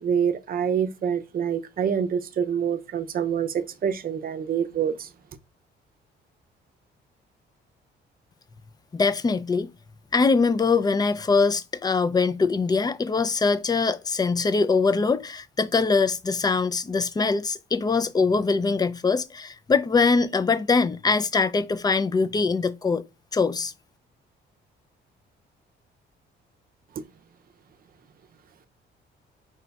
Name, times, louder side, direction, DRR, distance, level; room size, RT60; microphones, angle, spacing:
voice 1, 0.0-5.1, right 8 dB, 50° right, 0.6 m, -26 dB
voice 2, 8.9-9.7 10.1-23.0 23.3-23.7, left 4 dB, 20° left, 0.4 m, -23 dB
4.9 x 2.2 x 4.0 m
cardioid pair, 90°, 20 cm